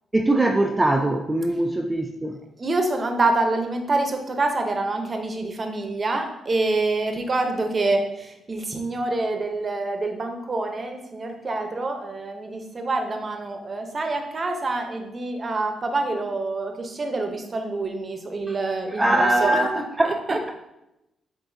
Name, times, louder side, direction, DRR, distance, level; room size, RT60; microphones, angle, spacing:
voice 1, 0.1-2.4 18.9-20.1, right 1 dB, 15° right, 3 dB, 0.3 m, -21 dB
voice 2, 2.6-19.6 20.0-20.5, right 2 dB, 35° right, 5 dB, 0.7 m, -26 dB
7.7 x 2.6 x 2.6 m, 0.89 s
cardioid pair, 90°, 0 cm